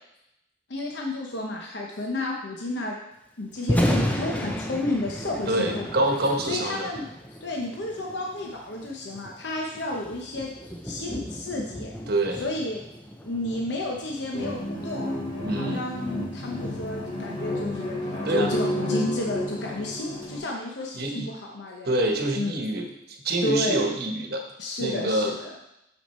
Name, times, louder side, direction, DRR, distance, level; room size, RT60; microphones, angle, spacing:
voice 1, 0.7-3.0 3.4-5.9 6.5-7.1 7.4-11.9 12.3-12.8 13.2-15.1 15.6-18.0 18.3-22.0 22.3-22.7 23.4-23.9 24.6-25.5, left 1 dB, 65° left, -1 dB, 0.9 m, -31 dB
Thunder, 3.5-17.7, equal, 10° left, 0.7 m, -33 dB
voice 2, 5.5-6.9 12.1-12.4 15.4-15.8 18.2-18.5 20.9-21.3 21.8-24.5 24.8-25.3, right 1 dB, 55° right, 2 dB, 1.1 m, -26 dB
sound 1, 14.3-20.4, left 1 dB, 25° left, 2.2 m, -31 dB
6.4 x 6.2 x 4.3 m, 0.85 s
head